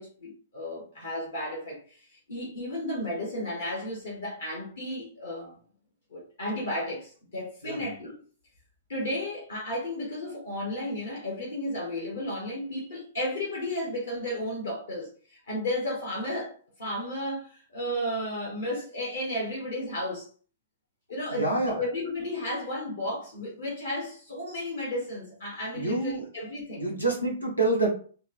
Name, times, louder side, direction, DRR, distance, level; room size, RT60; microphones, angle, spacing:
voice 1, 0.0-5.6 6.1-8.2 8.9-20.3 21.1-26.9, left 1 dB, 65° left, 1.1 m, -33 dB
voice 2, 21.3-21.8 25.7-26.2 26.8-27.9, right 2 dB, 90° left, 1.0 m, -27 dB
3.4 x 2.0 x 2.5 m
figure-of-eight pair, 110°, 0 cm